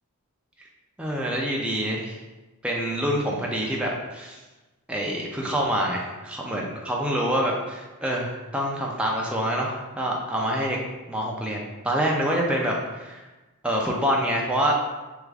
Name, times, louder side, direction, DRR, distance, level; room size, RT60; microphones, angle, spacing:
voice 1, 1.0-2.2 2.6-4.4 4.9-10.8 11.1-13.3 13.6-14.7, equal, 5° right, -2 dB, 0.3 m, -26 dB
3.5 x 2.3 x 3.3 m, 1.1 s
head